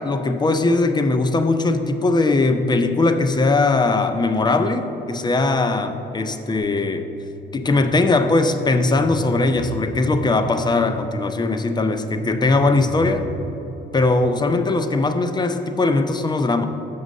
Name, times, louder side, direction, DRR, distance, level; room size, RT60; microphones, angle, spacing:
voice 1, 0.0-7.1 7.5-13.3 13.9-16.7, left 3 dB, 20° left, 9 dB, 0.5 m, -20 dB
sound 1, 6.6-13.4, right 1 dB, 75° right, 0.8 m, -35 dB
6.1 x 5.5 x 6.3 m, 3.0 s
cardioid pair, 90°, 20 cm